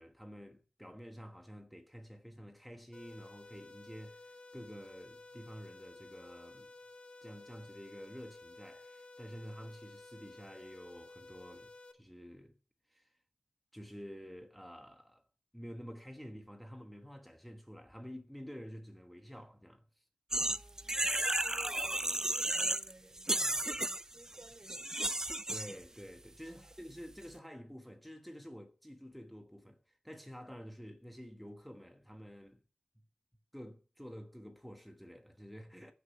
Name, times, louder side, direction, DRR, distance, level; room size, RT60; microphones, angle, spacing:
voice 1, 0.0-6.7 7.2-12.6 12.9-13.1 13.7-15.2 15.5-20.0 25.5-32.6 33.5-35.9, equal, ahead, 1.3 m, -50 dB
sound 1, 2.9-11.9, left 2 dB, 40° left, 2.0 m, -54 dB
sound 2, 20.3-22.9 23.2-25.8, right 1 dB, 20° right, 0.6 m, -33 dB
voice 2, 20.3-24.9 26.4-26.7, right 2 dB, 45° right, 3.0 m, -58 dB
15.5 x 6.8 x 9.4 m
wide cardioid pair, 70°, 3 cm